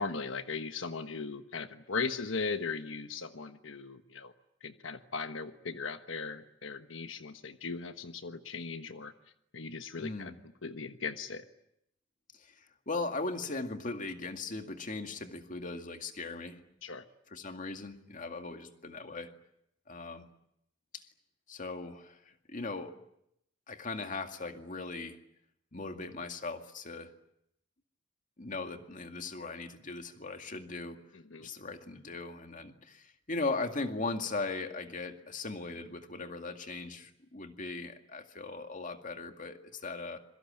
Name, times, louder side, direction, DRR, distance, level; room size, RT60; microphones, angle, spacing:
voice 1, 0.0-4.3 4.6-9.1 9.5-10.3 10.6-11.4 16.8-17.0 31.1-31.5, left 4 dB, 90° left, 8 dB, 1.3 m, -38 dB
voice 2, 10.0-10.4 12.4-12.5 12.9-16.6 17.3-19.3 19.9-20.3 20.9-21.0 21.5-22.9 23.7-25.2 25.7-27.1 28.4-31.0 31.4-40.2, left 3 dB, 45° left, 6 dB, 2.1 m, -38 dB
26.5 x 23.0 x 8.8 m, 0.77 s
head